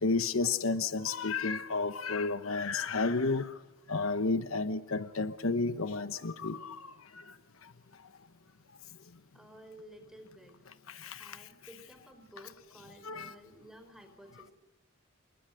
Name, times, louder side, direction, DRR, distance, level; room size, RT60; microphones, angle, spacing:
voice 1, 0.0-3.5 3.9-6.9 10.9-11.4 13.0-13.3, left 4 dB, 90° left, 1.1 m, -31 dB
voice 2, 9.3-10.6 11.2-14.5, right 1 dB, ahead, 4.7 m, -53 dB
28.5 x 23.5 x 6.6 m
head